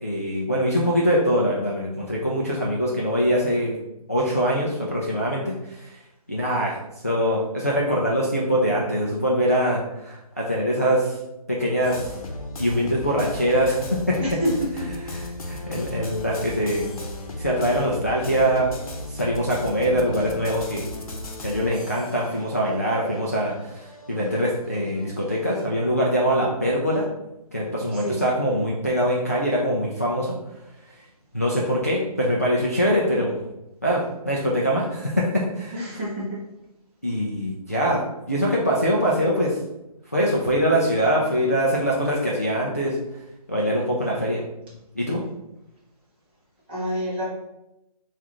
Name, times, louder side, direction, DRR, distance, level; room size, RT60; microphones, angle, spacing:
voice 1, 0.0-3.7 4.1-5.9 6.3-6.8 7.0-11.2 11.5-12.0 12.6-14.2 15.0-16.9 17.4-18.7 19.1-20.8 21.4-27.1 27.5-30.4 31.3-33.4 33.8-35.8 37.0-38.0 38.3-39.6 40.1-43.0 43.5-44.4 44.9-45.2, equal, 25° left, -5 dB, 0.3 m, -23 dB
sound 1, 11.8-25.7, left 1 dB, 65° left, 0.8 m, -36 dB
voice 2, 35.7-36.4 46.7-47.3, equal, 15° right, -7 dB, 0.9 m, -27 dB
7.0 x 2.4 x 2.9 m, 0.90 s
hypercardioid pair, 175°, 20 cm